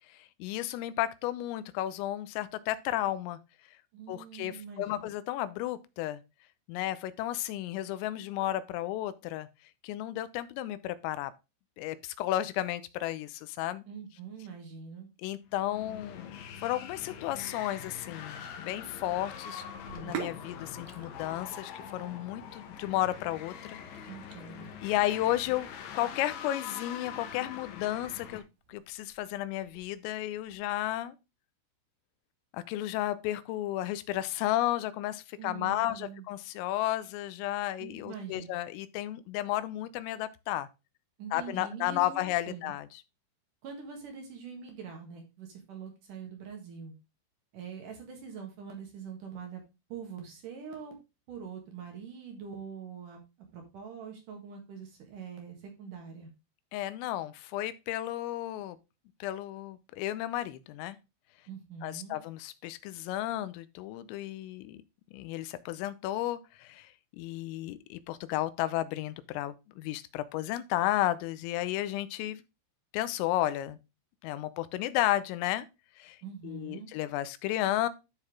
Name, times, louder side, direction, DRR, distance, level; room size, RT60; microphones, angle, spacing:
voice 1, 0.4-3.4 4.1-6.2 6.7-9.5 9.8-11.3 11.8-13.8 15.2-16.4 16.6-19.6 19.9-23.8 24.8-28.4 28.7-31.1 32.5-40.7 41.3-42.9 56.7-58.8 59.2-61.0 61.8-64.8 65.1-72.4 72.9-73.8 74.2-75.7 76.0-76.2 76.4-77.9, left 14 dB, 90° left, 3.3 m, -33 dB
voice 2, 3.9-5.1 13.9-15.1 24.1-24.7 35.4-36.3 37.8-38.5 41.2-42.7 43.6-46.9 47.5-49.6 49.9-51.0 51.3-53.2 53.5-56.3 61.5-62.2 76.2-76.9, right 6 dB, 60° right, 2.4 m, -44 dB
sound 1, 15.5-28.4, left 8 dB, 70° left, 3.4 m, -44 dB
Sink (filling or washing), 19.7-30.6, right 8 dB, 85° right, 2.0 m, -48 dB
12.5 x 4.5 x 3.6 m
omnidirectional pair, 5.9 m